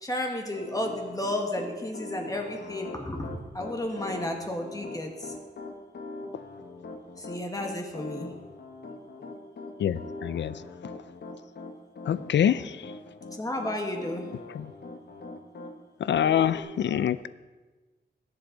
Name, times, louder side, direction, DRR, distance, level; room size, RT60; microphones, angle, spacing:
voice 1, 0.0-5.3 7.2-8.3 13.4-14.3, left 1 dB, 20° left, 2 dB, 1.7 m, -32 dB
Piano, 0.6-15.7 16.2-16.6, left 3 dB, 65° left, 1.4 m, -41 dB
voice 2, 9.8-10.6 12.0-12.9 14.5-14.7 16.0-17.3, left 9 dB, 90° left, 16 dB, 0.5 m, -26 dB
21.0 x 8.2 x 3.9 m, 1.2 s
wide cardioid pair, 125°, 18 cm